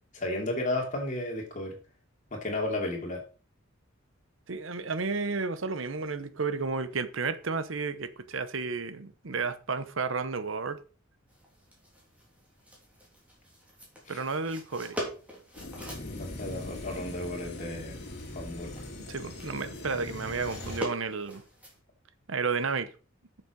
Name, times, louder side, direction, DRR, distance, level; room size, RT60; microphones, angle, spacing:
voice 1, 0.1-1.8 2.3-3.2 14.1-14.2 16.0-18.0 18.3-18.7, left 1 dB, 40° left, 2.8 m, -33 dB
voice 2, 4.5-10.8 14.1-15.0 19.1-21.4 22.3-22.9, right 4 dB, 70° right, 0.9 m, -32 dB
sound 1, 11.3-21.8, equal, 5° right, 3.3 m, -44 dB
sound 2, 15.5-20.8, left 1 dB, 55° left, 2.4 m, -41 dB
8.5 x 7.0 x 5.2 m
head